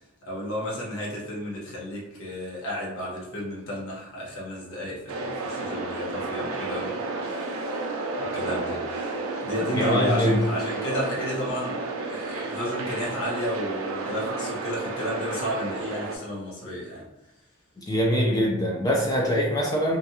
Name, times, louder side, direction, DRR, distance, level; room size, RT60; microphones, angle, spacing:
voice 1, 0.3-7.8 8.1-11.8 12.1-17.1, equal, 70° left, -6 dB, 1.0 m, -32 dB
sound 1, 5.1-16.2, right 3 dB, 70° right, 0.4 m, -32 dB
voice 2, 9.7-10.4 17.8-20.0, equal, 15° left, -2 dB, 0.3 m, -23 dB
2.5 x 2.3 x 2.7 m, 0.93 s
head